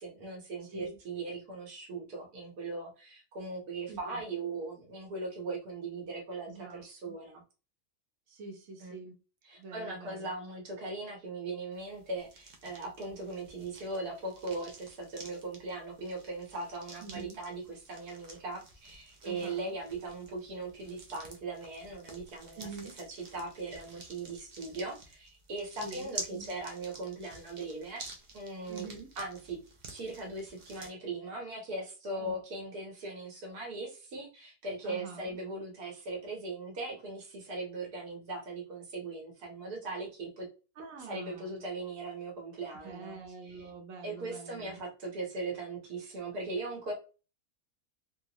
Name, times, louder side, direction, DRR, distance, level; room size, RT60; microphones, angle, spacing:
voice 1, 0.0-7.4 8.8-9.0 9.4-22.7 23.1-28.0 28.3-29.6 29.9-40.5 41.0-43.2 43.4-43.7 44.0-46.9, right 2 dB, 80° right, 0 dB, 1.7 m, -39 dB
voice 2, 3.9-4.2 6.5-7.2 8.3-9.2 9.5-10.3 17.0-17.4 19.2-19.8 22.6-23.0 25.8-26.5 28.7-29.1 32.2-32.4 34.8-35.4 40.8-41.6 42.8-44.8, right 3 dB, 65° right, 4 dB, 1.2 m, -45 dB
sound 1, 11.7-30.9, right 3 dB, 50° right, 0.5 m, -50 dB
3.6 x 2.3 x 2.9 m, 0.34 s
omnidirectional pair, 1.6 m